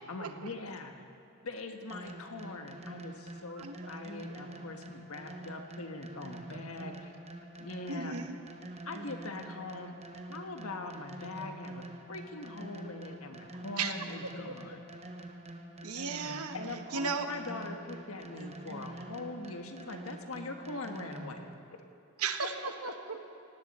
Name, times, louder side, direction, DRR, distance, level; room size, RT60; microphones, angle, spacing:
voice 1, 0.1-1.1 1.4-7.1 7.6-8.1 8.8-10.0 10.3-14.8 16.5-21.5 22.4-22.7, left 3 dB, 70° left, 5 dB, 1.4 m, -42 dB
sound 1, 1.9-21.5, right 1 dB, 30° right, 1.0 m, -46 dB
voice 2, 7.9-8.3 13.8-13.9 15.8-16.5 16.9-17.3 22.2-23.3, right 5 dB, 85° right, 7 dB, 1.2 m, -35 dB
18.0 x 18.0 x 4.3 m, 2.7 s
head